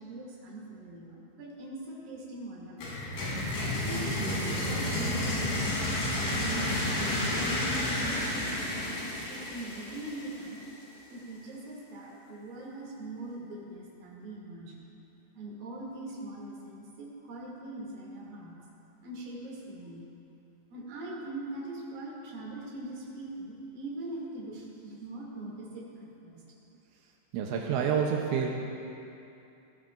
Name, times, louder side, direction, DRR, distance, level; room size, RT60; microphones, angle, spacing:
voice 1, 0.0-3.0 3.7-10.6 11.1-14.9 15.3-18.6 19.0-20.1 20.7-26.4, right 2 dB, 55° right, -5 dB, 4.2 m, -42 dB
sound 1, 2.8-10.6, left 1 dB, 75° left, 5.7 m, -31 dB
voice 2, 27.3-28.5, right 7 dB, 90° right, 0 dB, 3.2 m, -28 dB
18.5 x 16.5 x 2.6 m, 2.8 s
omnidirectional pair, 5.2 m